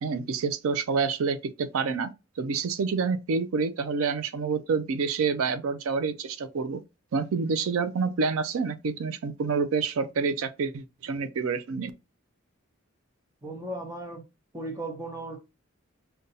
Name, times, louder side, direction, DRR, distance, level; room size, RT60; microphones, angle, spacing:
voice 1, 0.0-2.1 2.4-6.8 7.1-11.9, right 5 dB, 90° right, 0.4 m, -28 dB
voice 2, 13.4-14.2 14.5-15.4, right 1 dB, 15° right, 0.8 m, -36 dB
5.2 x 2.2 x 2.6 m
head